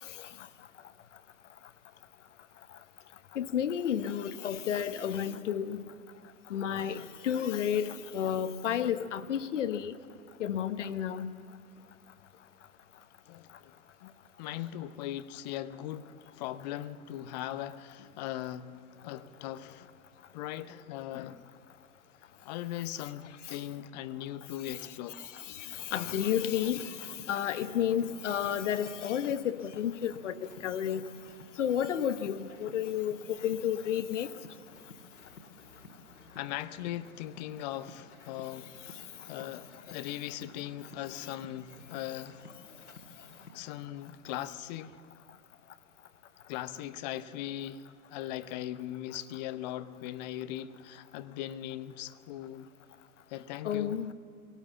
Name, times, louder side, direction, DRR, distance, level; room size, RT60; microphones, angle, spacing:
voice 1, 3.3-5.9 6.5-10.0 10.4-11.3 23.5-23.6 24.8-31.1 31.6-34.3 53.6-54.1, left 9 dB, 55° left, 1.1 m, -32 dB
voice 2, 13.3-13.7 14.0-14.1 14.4-16.1 16.4-18.7 19.0-19.9 20.3-21.4 22.4-25.2 36.4-42.4 43.5-44.9 46.5-47.8 48.1-52.7 53.3-54.0, left 13 dB, 30° left, 0.7 m, -39 dB
sound 1, 25.8-43.7, left 3 dB, 80° left, 2.3 m, -54 dB
24.0 x 18.0 x 7.2 m
figure-of-eight pair, 110°, 44 cm